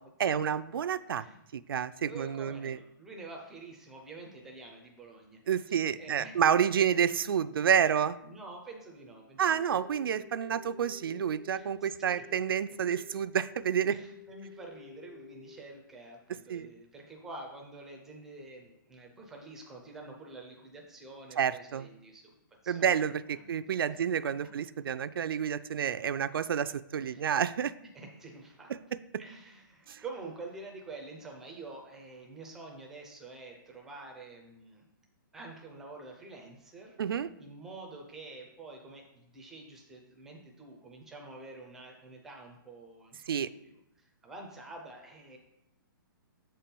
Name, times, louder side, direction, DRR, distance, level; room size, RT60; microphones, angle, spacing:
voice 1, 0.2-1.2 1.5-2.8 5.5-8.2 9.4-14.0 16.5-16.7 21.4-21.9 22.7-27.7 29.9-30.0 37.0-37.3 43.3-43.5, right 8 dB, 80° right, 14 dB, 0.4 m, -29 dB
voice 2, 1.1-1.5 2.1-6.3 6.8-6.9 8.2-9.8 11.5-12.2 13.9-22.3 22.6-23.0 23.3-24.0 27.1-27.3 27.9-28.7 29.2-34.9 35.3-37.0 37.4-45.4, right 3 dB, 5° right, 1 dB, 0.4 m, -48 dB
sound 1, 9.5-15.6, left 7 dB, 60° left, 1.3 m, -52 dB
7.2 x 4.4 x 5.2 m, 0.84 s
hypercardioid pair, 175°, 12 cm